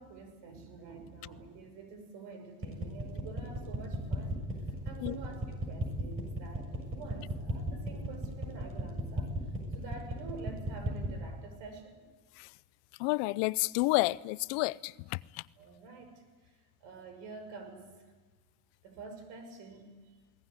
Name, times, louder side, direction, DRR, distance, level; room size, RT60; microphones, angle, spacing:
voice 1, 0.0-4.4 4.8-9.3 9.7-12.0 15.6-16.2 16.8-17.9 18.8-20.0, right 4 dB, 75° right, 6.5 m, -47 dB
sound 1, 2.6-11.2, right 1 dB, 30° right, 7.1 m, -34 dB
voice 2, 13.0-15.4, left 22 dB, 80° left, 0.7 m, -30 dB
21.5 x 19.0 x 9.8 m
supercardioid pair, 100°, 44 cm